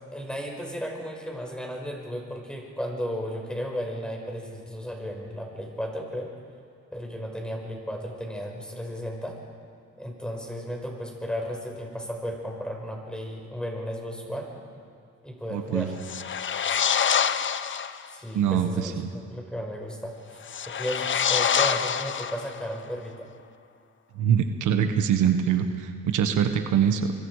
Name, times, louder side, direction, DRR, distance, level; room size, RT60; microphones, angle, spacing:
voice 1, 0.1-6.3 6.9-9.4 10.0-14.7 15.2-15.9 18.1-20.2 20.7-23.3, equal, 5° left, 0 dB, 5.4 m, -34 dB
voice 2, 15.5-15.9 18.3-19.1 24.1-27.1, right 8 dB, 80° right, 7 dB, 1.5 m, -24 dB
sound 1, 16.0-18.1 20.4-22.8, left 8 dB, 40° left, 0.7 m, -26 dB
25.0 x 23.0 x 4.9 m, 2.4 s
cardioid pair, 90°, 30 cm